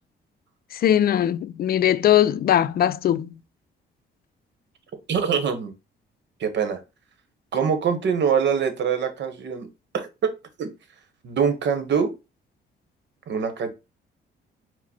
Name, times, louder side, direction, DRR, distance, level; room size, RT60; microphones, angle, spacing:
voice 1, 0.7-3.3, left 11 dB, 50° left, 0.4 m, -20 dB
voice 2, 5.1-5.7 6.4-6.8 7.5-9.7 9.9-10.3 10.6-10.7 11.2-12.1 13.3-13.7, right 6 dB, 65° right, 1.0 m, -24 dB
4.8 x 2.1 x 4.2 m
cardioid pair, 90°, 20 cm